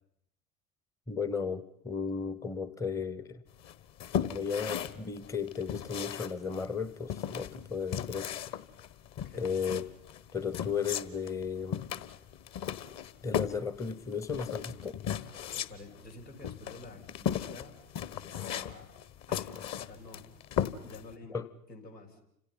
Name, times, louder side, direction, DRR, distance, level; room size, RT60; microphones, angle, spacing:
voice 1, 1.1-3.4 4.2-8.3 9.4-9.9 10.3-11.8 13.2-15.0 21.3-21.5, left 6 dB, 5° left, 15 dB, 0.9 m, -35 dB
sound 1, 3.6-21.1, left 9 dB, 35° left, 1.4 m, -37 dB
voice 2, 9.2-9.7 15.2-17.8 18.1-18.9 19.3-19.5 19.8-20.2 20.8-21.4 21.7-22.2, left 2 dB, 90° left, -1 dB, 6.8 m, -50 dB
30.0 x 27.0 x 5.7 m, 0.75 s
figure-of-eight pair, 100°, 48 cm